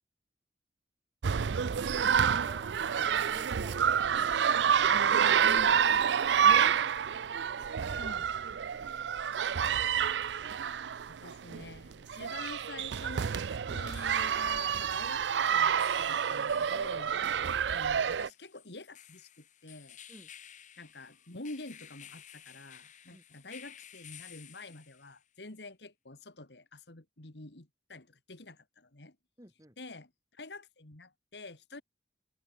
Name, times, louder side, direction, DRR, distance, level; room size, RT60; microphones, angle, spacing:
sound 1, 1.2-18.3, right 7 dB, 85° right, 0.5 m, -28 dB
voice 1, 1.6-5.6 7.6-8.1 8.7-9.4 17.4-17.6 20.1-20.3 23.1-23.2 29.4-29.8, right 1 dB, 20° right, 5.8 m, -53 dB
voice 2, 5.4-5.9 8.0-8.3 11.1-17.1 17.7-20.0 20.8-29.2 29.8-31.8, left 2 dB, 70° left, 2.3 m, -47 dB
sound 2, 11.1-11.2 13.7-25.3, left 10 dB, 45° left, 1.5 m, -55 dB
open air
head